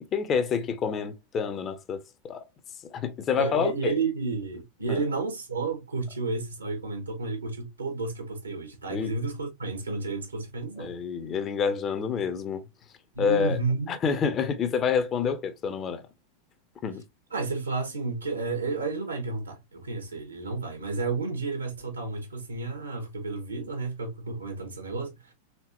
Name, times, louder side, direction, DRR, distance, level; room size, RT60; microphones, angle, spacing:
voice 1, 0.1-2.4 2.9-3.9 4.9-5.0 8.9-9.1 10.8-12.6 13.2-13.6 13.9-16.0 16.8-17.0, left 6 dB, 30° left, 0.8 m, -28 dB
voice 2, 3.4-10.9 13.2-14.0 17.3-25.3, right 3 dB, 75° right, 1.8 m, -31 dB
4.4 x 3.7 x 2.8 m
figure-of-eight pair, 90°, 0 cm